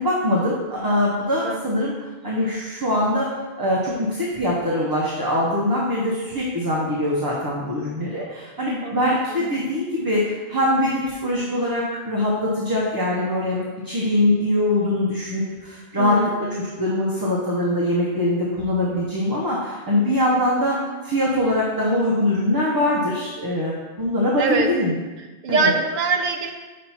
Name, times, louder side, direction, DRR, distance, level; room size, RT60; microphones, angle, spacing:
voice 1, 0.0-3.3 3.6-13.6 13.8-16.2 16.5-20.8 21.0-25.0 25.5-25.7, left 1 dB, 20° right, -6 dB, 0.7 m, -23 dB
voice 2, 8.8-9.5 16.0-16.6 24.4-24.7 25.4-26.5, right 4 dB, 55° right, 4 dB, 0.7 m, -24 dB
5.6 x 3.2 x 5.6 m, 1.3 s
omnidirectional pair, 1.1 m